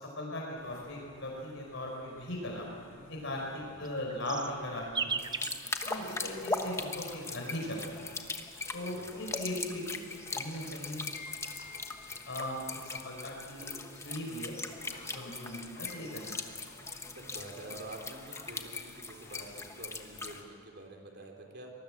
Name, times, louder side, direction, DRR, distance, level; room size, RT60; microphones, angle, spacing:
voice 1, 0.0-2.7 3.1-5.2 5.8-8.0 8.7-10.1 10.3-11.0 12.3-12.6 13.0-14.6 15.1-16.4, left 1 dB, 60° left, -1 dB, 5.1 m, -38 dB
sound 1, 0.6-20.4, left 2 dB, 40° left, 4.5 m, -54 dB
voice 2, 3.2-3.9 8.8-9.4 17.1-21.7, right 2 dB, 50° right, 2 dB, 3.8 m, -48 dB
sound 2, 3.5-7.0 7.9-9.2 10.1-12.0 13.4-15.5 15.9-16.4 16.7-17.8 18.1-18.8, right 5 dB, 20° right, 0.6 m, -43 dB
sound 3, 5.2-20.4, left 3 dB, 15° left, 1.2 m, -40 dB
25.0 x 19.5 x 7.5 m, 2.1 s
head